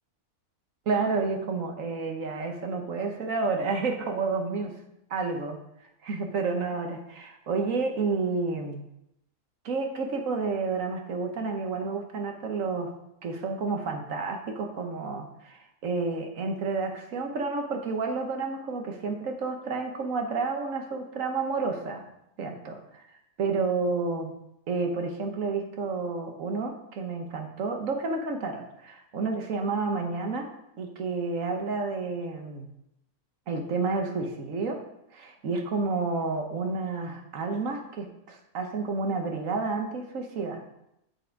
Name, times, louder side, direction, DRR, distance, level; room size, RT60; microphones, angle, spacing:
voice 1, 0.9-4.7 5.1-5.6 6.0-8.9 9.6-12.9 13.2-22.0 22.4-23.0 23.4-24.3 24.7-30.5 30.8-32.7 33.5-34.8 35.1-40.6, right 4 dB, 60° right, 4 dB, 1.5 m, -30 dB
7.6 x 6.1 x 4.6 m, 0.82 s
omnidirectional pair, 1.6 m